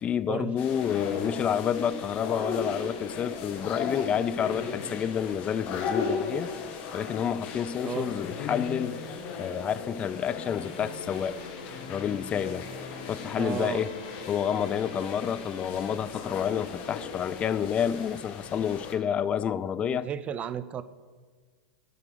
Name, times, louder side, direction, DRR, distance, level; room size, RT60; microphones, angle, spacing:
voice 1, 0.0-6.5 6.9-9.0 9.4-11.4 11.9-12.7 13.1-13.9 14.3-20.1, left 8 dB, 30° left, 0.5 m, -29 dB
sound 1, 0.6-18.9, left 5 dB, 45° left, 2.0 m, -37 dB
sound 2, 10.1-16.0, left 4 dB, 75° left, 4.6 m, -44 dB
voice 2, 13.4-13.9 19.8-20.8, right 9 dB, 30° right, 0.8 m, -33 dB
9.7 x 9.4 x 9.5 m
hypercardioid pair, 100°, 4 cm